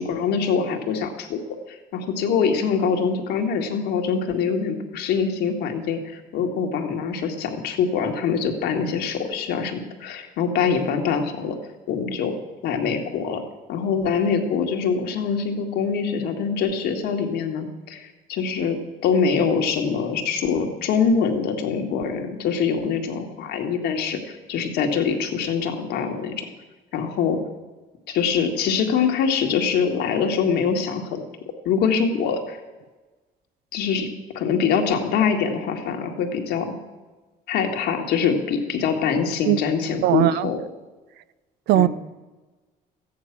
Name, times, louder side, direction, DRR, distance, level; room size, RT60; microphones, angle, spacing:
voice 1, 0.0-1.4 1.7-11.6 11.9-12.4 12.6-13.4 13.7-26.4 26.9-27.4 28.1-31.2 31.7-32.6 33.7-34.1 34.3-36.7 37.5-40.6 41.7-41.9, left 6 dB, 80° left, 2.0 m, -24 dB
voice 2, 40.0-40.5 41.7-41.9, right 15 dB, 75° right, 0.5 m, -18 dB
14.0 x 9.5 x 6.1 m
cardioid pair, 110°, 17 cm